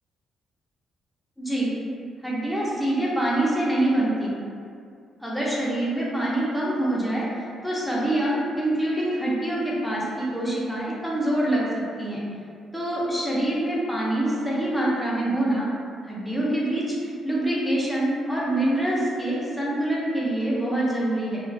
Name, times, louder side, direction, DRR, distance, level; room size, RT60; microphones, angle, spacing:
voice 1, 1.4-1.7 2.2-4.3 5.2-7.2 7.6-11.6 12.0-12.2 12.7-15.7 16.0-21.4, right 1 dB, 5° left, -7 dB, 0.6 m, -25 dB
2.4 x 2.3 x 2.2 m, 2.3 s
cardioid pair, 90°, 0 cm